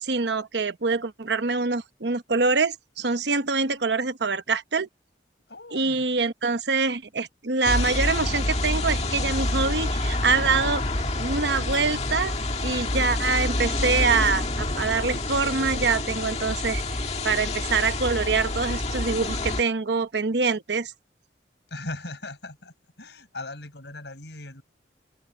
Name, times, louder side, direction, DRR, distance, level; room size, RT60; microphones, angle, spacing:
voice 1, 0.0-4.9 5.7-10.8 11.1-12.3 12.6-20.9, right 4 dB, 70° right, 1.0 m, -25 dB
voice 2, 5.5-6.0 21.7-24.6, left 2 dB, 75° left, 4.9 m, -39 dB
sound 1, 7.6-19.6, left 2 dB, 35° left, 2.0 m, -27 dB
head